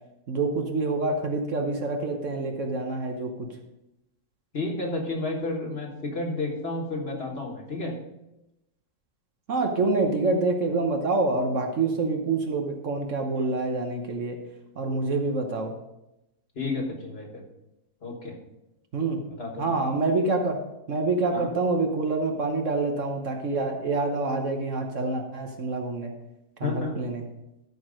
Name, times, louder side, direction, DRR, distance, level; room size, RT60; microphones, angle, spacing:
voice 1, 0.3-3.5 9.5-14.4 14.8-15.7 18.9-19.2 19.6-20.6 20.9-26.1 26.6-27.2, right 3 dB, 55° right, 3 dB, 1.3 m, -26 dB
voice 2, 4.5-8.0 13.3-13.5 16.5-17.4 18.0-18.4 19.4-19.7 21.3-21.5 26.6-27.0, left 2 dB, 40° left, 1 dB, 1.6 m, -31 dB
13.0 x 4.7 x 5.1 m, 0.91 s
omnidirectional pair, 1.6 m